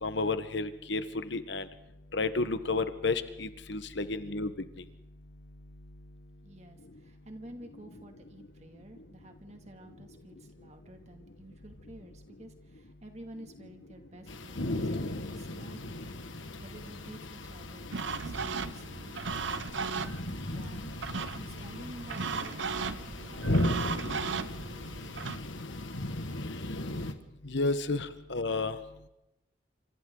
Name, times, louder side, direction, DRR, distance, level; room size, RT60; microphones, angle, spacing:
voice 1, 0.0-1.7 2.1-4.5 27.4-28.8, left 3 dB, 70° left, 11 dB, 1.3 m, -31 dB
voice 2, 6.4-20.0 20.3-25.4, right 1 dB, 35° right, 4 dB, 2.5 m, -51 dB
sound 1, 14.3-27.1, left 1 dB, 85° left, 1.8 m, -36 dB
sound 2, 17.9-25.4, right 5 dB, 75° right, 0.9 m, -36 dB
27.5 x 26.5 x 3.9 m, 0.91 s
head